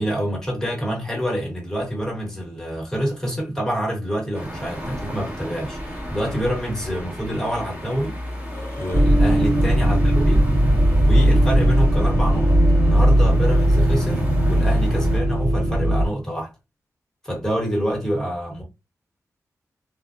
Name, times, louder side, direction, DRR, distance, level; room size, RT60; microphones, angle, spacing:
voice 1, 0.0-8.2 8.8-10.4 11.0-16.5 17.2-18.6, equal, 10° left, 1.3 m, -27 dB
sound 1, 4.3-15.2, equal, 25° right, 1.4 m, -35 dB
Burping eructation, 8.3-9.1, left 2 dB, 35° left, 0.9 m, -38 dB
sound 2, 8.9-16.1, right 1 dB, 45° right, 1.9 m, -17 dB
3.4 x 2.4 x 2.6 m
wide cardioid pair, 150°, 6 cm